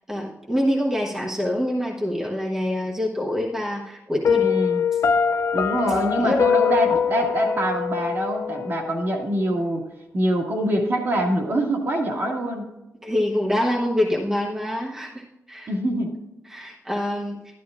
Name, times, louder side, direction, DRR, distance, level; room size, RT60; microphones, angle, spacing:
voice 1, 0.1-4.5 5.9-6.4 13.0-15.7 16.5-17.4, left 1 dB, 10° right, -2 dB, 1.1 m, -25 dB
Piano, 4.2-9.2, left 7 dB, 55° left, 0.5 m, -23 dB
voice 2, 4.4-4.8 5.5-9.9 10.1-12.7 15.7-16.2, equal, 50° right, 0 dB, 1.8 m, -24 dB
12.0 x 11.5 x 2.4 m, 0.95 s
wide cardioid pair, 155°, 5 cm